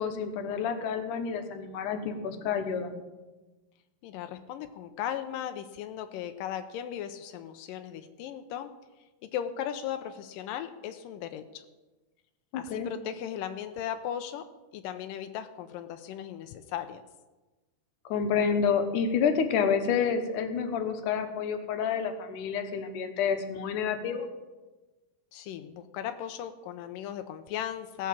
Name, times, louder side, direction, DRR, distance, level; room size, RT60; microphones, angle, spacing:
voice 1, 0.0-3.0 12.5-12.9 18.1-24.3, left 6 dB, 70° left, 7 dB, 2.1 m, -29 dB
voice 2, 4.0-8.7 9.2-11.6 12.5-14.5 14.7-17.0 25.3-28.1, left 10 dB, 90° left, 8 dB, 1.9 m, -37 dB
17.5 x 5.9 x 7.3 m, 1.2 s
omnidirectional pair, 4.7 m